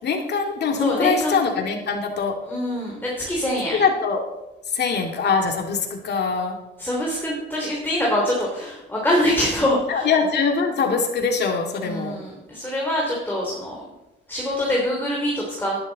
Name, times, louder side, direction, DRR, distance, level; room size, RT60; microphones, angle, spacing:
voice 1, 0.0-2.4 3.8-4.2 4.6-6.6 9.9-12.2, left 5 dB, 55° left, 2 dB, 2.4 m, -23 dB
voice 2, 0.8-1.3 2.5-3.8 6.8-10.1 11.8-13.9 14.3-15.8, left 1 dB, 10° left, -3 dB, 3.2 m, -24 dB
11.5 x 11.0 x 4.1 m, 0.96 s
cardioid pair, 90°, 20 cm